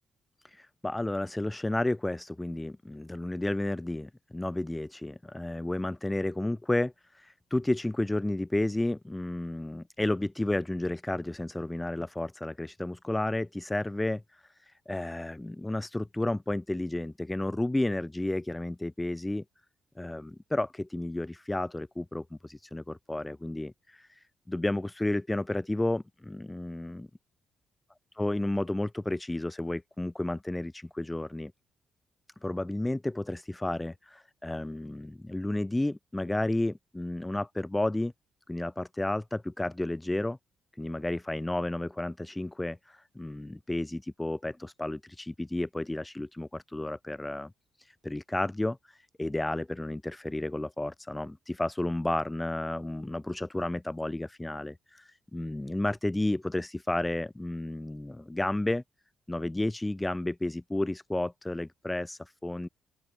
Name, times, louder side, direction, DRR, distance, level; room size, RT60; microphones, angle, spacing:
voice 1, 0.4-19.4 20.0-27.1 28.1-31.5 32.4-38.1 38.5-40.4 40.8-47.5 47.8-58.8 59.3-62.7, left 1 dB, 15° left, 5.0 m, -32 dB
open air
hypercardioid pair, 45°, 0 cm